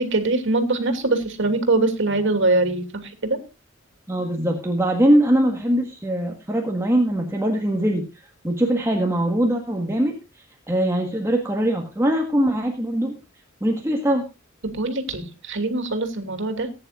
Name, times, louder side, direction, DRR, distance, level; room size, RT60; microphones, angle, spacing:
voice 1, 0.0-3.4 14.6-16.7, right 2 dB, 65° right, 6 dB, 2.8 m, -23 dB
voice 2, 4.1-8.1 8.4-13.2 13.6-14.3, right 1 dB, 15° right, 1 dB, 1.6 m, -22 dB
19.5 x 10.0 x 2.5 m, 0.28 s
head